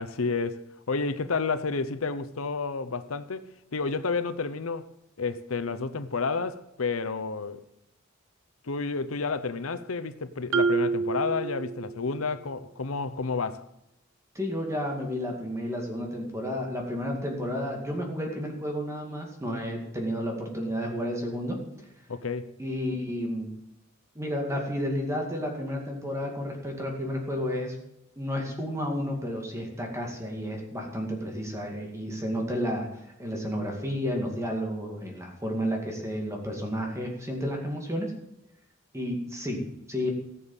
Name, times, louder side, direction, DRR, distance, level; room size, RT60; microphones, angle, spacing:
voice 1, 0.0-4.9 5.2-7.6 8.6-13.7 22.1-22.5, left 4 dB, 85° left, 0.8 m, -30 dB
Marimba xylophone, 10.5-12.3, right 4 dB, 80° right, 0.9 m, -28 dB
voice 2, 14.3-21.6 22.6-23.5 24.2-27.8 28.2-38.1 38.9-39.6 39.9-40.1, equal, 15° right, 2.2 m, -31 dB
15.0 x 7.1 x 7.2 m
head